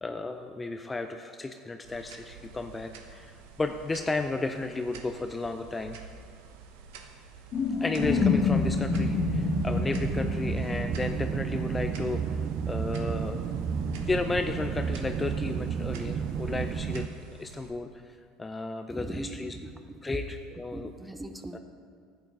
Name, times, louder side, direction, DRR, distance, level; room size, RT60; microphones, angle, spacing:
voice 1, 0.0-6.0 7.8-12.4 12.7-13.5 14.1-17.1 17.3-19.6 20.0-20.9 21.5-21.6, left 3 dB, 15° left, 6 dB, 0.5 m, -33 dB
sound 1, 1.8-17.7, right 5 dB, 80° right, 1.0 m, -48 dB
sound 2, 7.5-12.1, left 6 dB, 40° left, 0.8 m, -29 dB
sound 3, 8.0-17.1, right 7 dB, 45° right, 0.4 m, -32 dB
voice 2, 18.9-19.3 19.6-19.7 20.7-21.6, right 2 dB, 10° right, 8 dB, 0.8 m, -39 dB
11.0 x 8.3 x 4.8 m, 2.1 s
supercardioid pair, 100°, 0 cm